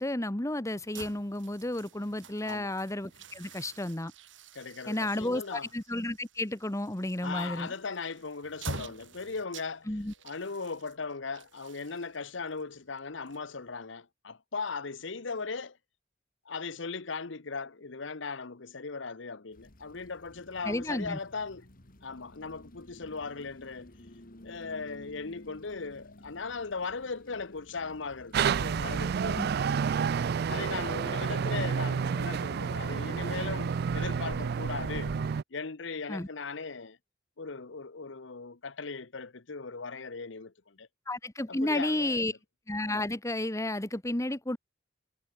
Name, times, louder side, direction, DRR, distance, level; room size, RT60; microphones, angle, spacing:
voice 1, 0.0-4.1 4.9-7.7 9.9-10.1 20.6-21.2 29.4-29.5 36.1-36.3 41.1-42.3 42.7-44.6, left 1 dB, 15° left, 1.3 m, -32 dB
sound 1, 0.8-13.8, right 3 dB, 70° right, 5.1 m, -47 dB
voice 2, 2.4-2.7 4.5-5.7 7.2-9.9 10.2-15.8 16.4-21.7 22.0-23.9 24.4-29.6 30.5-35.1 35.5-37.0 37.4-40.9 41.5-42.3, left 4 dB, 70° left, 1.0 m, -38 dB
sound 2, 19.5-35.3, left 1 dB, 45° left, 2.5 m, -52 dB
sound 3, 28.3-35.4, right 6 dB, 55° right, 0.4 m, -30 dB
head